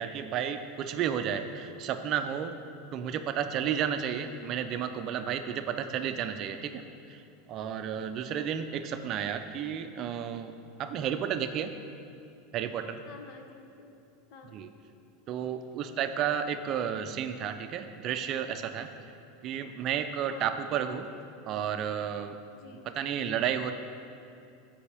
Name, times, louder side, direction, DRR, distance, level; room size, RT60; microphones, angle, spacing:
voice 1, 0.0-2.6 2.9-7.2 7.5-10.5 10.8-11.8 12.5-13.0 14.5-14.7 15.3-18.9 19.4-21.1 21.5-22.4 23.0-23.7, right 8 dB, 40° right, 8 dB, 0.5 m, -32 dB
voice 2, 13.0-13.9 14.3-14.6 20.2-20.6 22.5-23.1, left 4 dB, 50° left, 4 dB, 0.9 m, -50 dB
15.0 x 5.4 x 3.4 m, 2.5 s
supercardioid pair, 140°, 0 cm